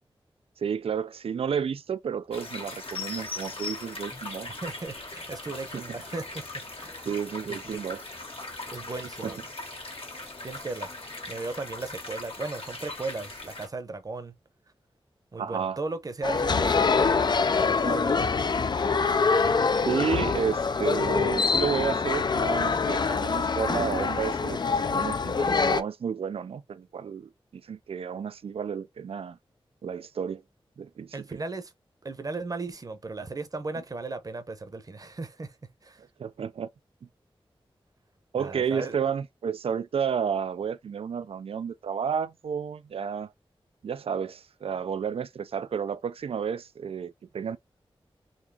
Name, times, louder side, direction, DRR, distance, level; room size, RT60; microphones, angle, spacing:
voice 1, 0.6-4.5 5.7-6.0 7.1-8.0 9.2-9.3 15.4-15.8 19.8-29.4 29.8-30.4 30.8-31.4 36.2-36.7 38.3-43.3 43.8-47.6, right 7 dB, 80° right, 0.4 m, -31 dB
sound 1, 2.3-13.7, left 2 dB, 75° left, 1.5 m, -39 dB
voice 2, 4.6-7.1 7.5-7.8 8.7-9.4 10.1-10.9 11.3-14.3 15.3-18.2 31.1-31.7 32.0-36.0 38.4-39.0, right 3 dB, 40° right, 0.8 m, -36 dB
sound 2, 16.2-25.8, left 4 dB, 50° left, 0.4 m, -25 dB
4.0 x 2.9 x 2.8 m
wide cardioid pair, 105°, 10 cm